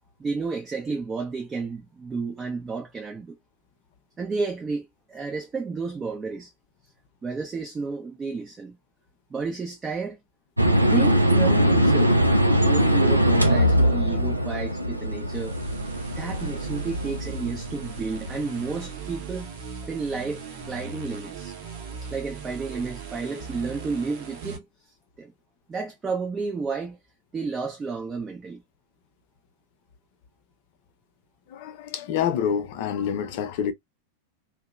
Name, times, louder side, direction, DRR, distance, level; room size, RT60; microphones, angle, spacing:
voice 1, 0.2-3.4 4.2-6.5 7.2-8.8 9.3-10.2 10.8-12.1 12.6-15.6 16.2-19.5 19.9-21.5 22.0-24.7 25.2-25.3 25.7-27.0 27.3-28.6, right 4 dB, 20° right, 0.6 m, -31 dB
sound 1, 10.6-18.6, equal, 85° right, 0.4 m, -21 dB
sound 2, 15.2-24.6, right 5 dB, 50° right, 0.9 m, -38 dB
voice 2, 31.5-33.7, left 8 dB, 50° left, 0.6 m, -27 dB
2.7 x 2.2 x 2.3 m
figure-of-eight pair, 90°, 0 cm